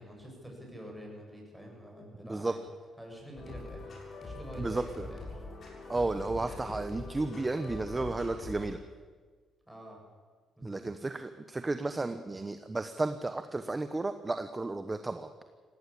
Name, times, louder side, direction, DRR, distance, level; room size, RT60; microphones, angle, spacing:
voice 1, 0.0-2.6 3.0-3.9 4.2-5.4 9.7-10.0 10.6-10.8, equal, ahead, 0 dB, 7.6 m, -47 dB
sound 1, 3.4-8.6, left 2 dB, 50° left, 7.0 m, -43 dB
voice 2, 4.6-5.1 5.9-8.8 10.6-15.3, right 2 dB, 20° right, 9 dB, 1.0 m, -33 dB
18.0 x 17.5 x 8.6 m, 1.5 s
cardioid pair, 90°, 0 cm